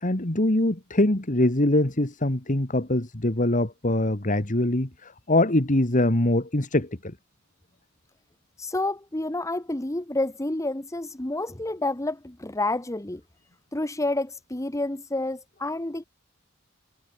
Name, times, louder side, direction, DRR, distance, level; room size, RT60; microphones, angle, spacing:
voice 1, 0.0-7.1, left 1 dB, 40° left, 2.1 m, -23 dB
voice 2, 8.6-13.2 13.7-16.0, left 2 dB, 15° left, 1.1 m, -29 dB
head